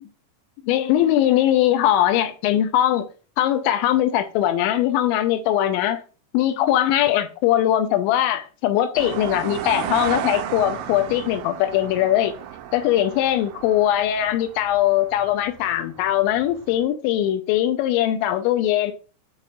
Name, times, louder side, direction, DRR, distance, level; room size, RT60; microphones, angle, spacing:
voice 1, 0.6-3.1 3.4-6.0 6.3-12.3 12.7-18.9, left 12 dB, 85° left, 2.9 m, -21 dB
sound 1, 8.9-16.8, right 10 dB, 85° right, 3.1 m, -34 dB
8.9 x 4.2 x 2.5 m
omnidirectional pair, 5.4 m